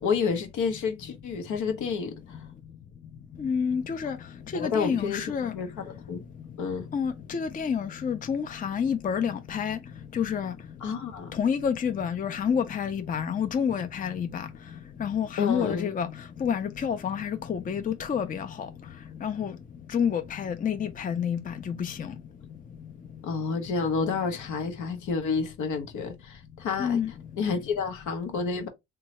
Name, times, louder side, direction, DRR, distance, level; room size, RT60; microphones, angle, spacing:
voice 1, 0.0-2.4 4.5-6.2 6.6-6.9 10.8-11.4 15.4-15.9 23.2-27.0 27.4-28.7, left 5 dB, 80° left, 0.8 m, -30 dB
voice 2, 3.4-4.2 4.5-5.5 6.9-9.8 10.1-10.5 11.4-14.5 15.0-16.1 16.4-18.5 19.2-19.5 19.9-22.1 26.8-27.1, left 7 dB, 30° left, 0.4 m, -28 dB
3.0 x 2.3 x 2.8 m
cardioid pair, 90°, 30 cm